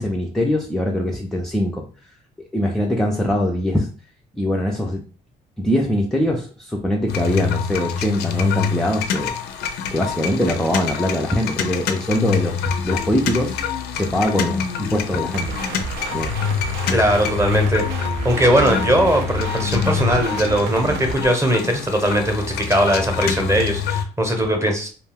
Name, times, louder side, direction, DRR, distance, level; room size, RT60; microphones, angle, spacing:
voice 1, 0.0-1.8 2.4-3.9 4.4-5.0 5.6-13.6 13.9-15.5 16.1-16.4 16.8-17.0, left 1 dB, 5° left, 0 dB, 0.4 m, -22 dB
sound 1, 7.1-24.0, left 7 dB, 75° left, 0.5 m, -26 dB
sound 2, 15.3-21.1, right 4 dB, 85° right, 0.5 m, -31 dB
voice 2, 16.9-17.8 18.2-24.9, equal, 15° right, 3 dB, 0.8 m, -19 dB
2.4 x 2.2 x 3.4 m, 0.39 s
cardioid pair, 110°, 17 cm